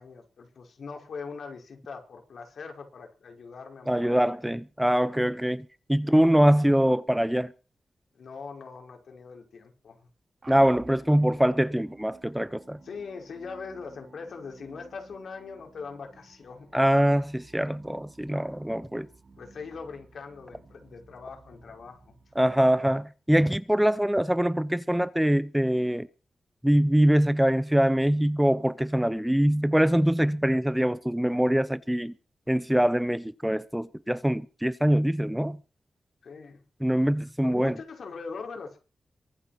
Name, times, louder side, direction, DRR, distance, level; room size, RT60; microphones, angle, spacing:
voice 1, 0.0-4.3 6.0-6.2 8.2-10.1 12.8-16.8 19.4-22.2 36.2-36.6 37.4-38.8, left 5 dB, 75° left, 5.4 m, -41 dB
voice 2, 3.9-7.5 10.5-12.8 16.7-19.1 22.4-26.1 26.6-32.1 32.5-35.6 36.8-37.7, equal, 5° right, 0.7 m, -23 dB
sound 1, 10.4-23.3, right 3 dB, 40° right, 3.1 m, -53 dB
23.0 x 9.0 x 6.0 m
wide cardioid pair, 120°, 0 cm